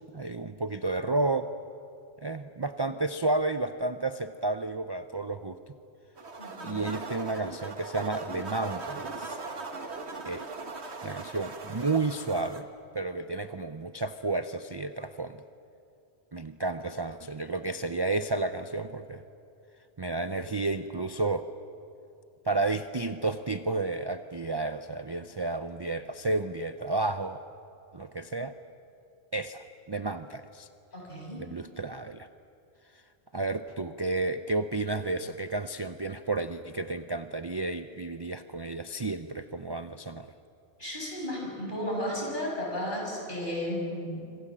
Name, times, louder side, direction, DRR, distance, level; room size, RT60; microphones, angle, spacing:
voice 1, 0.1-1.5 2.2-5.6 6.6-9.4 10.3-10.5 11.0-12.7 12.9-15.4 16.3-19.2 20.0-21.5 22.4-27.4 27.9-28.5 29.3-30.7 31.4-32.3 33.3-40.3, right 2 dB, 30° right, 9 dB, 0.6 m, -31 dB
sound 1, 6.2-12.6, right 3 dB, 80° right, 1.9 m, -39 dB
voice 2, 6.4-6.9 30.9-31.4 40.8-44.2, left 1 dB, 45° left, -1 dB, 7.0 m, -34 dB
26.0 x 25.5 x 7.5 m, 2.7 s
omnidirectional pair, 1.1 m